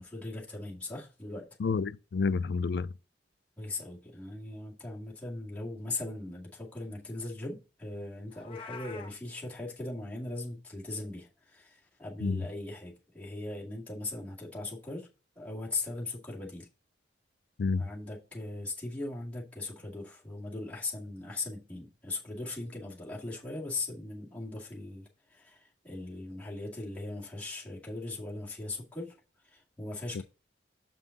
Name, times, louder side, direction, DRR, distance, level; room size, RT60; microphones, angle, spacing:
voice 1, 0.0-1.5 3.6-15.1 15.4-16.7 17.8-29.2 29.4-30.2, left 2 dB, 10° left, 2.1 m, -39 dB
voice 2, 1.6-2.9 12.2-12.4 17.6-17.9 30.1-30.2, left 4 dB, 65° left, 0.4 m, -29 dB
Meow, 8.3-9.1, left 5 dB, 30° left, 0.9 m, -45 dB
7.0 x 5.5 x 3.9 m
head